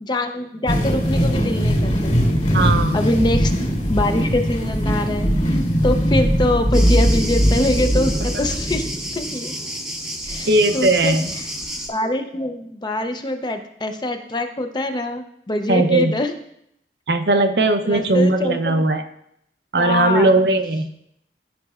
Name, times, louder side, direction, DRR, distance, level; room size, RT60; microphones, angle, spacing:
voice 1, 0.0-2.1 2.9-3.5 3.9-8.8 9.1-9.5 10.3-10.5 10.7-11.5 11.9-16.3 17.9-18.8 19.8-20.4, left 1 dB, 25° left, 6 dB, 0.5 m, -24 dB
sound 1, 0.7-9.1, equal, 45° left, 2.7 m, -20 dB
voice 2, 2.5-3.0 10.5-11.2 15.7-16.1 17.1-19.1 19.7-21.0, right 2 dB, 65° right, 7 dB, 0.6 m, -18 dB
Thunder, 6.7-11.9, equal, 5° right, 0.8 m, -29 dB
13.0 x 5.3 x 2.4 m, 0.74 s
head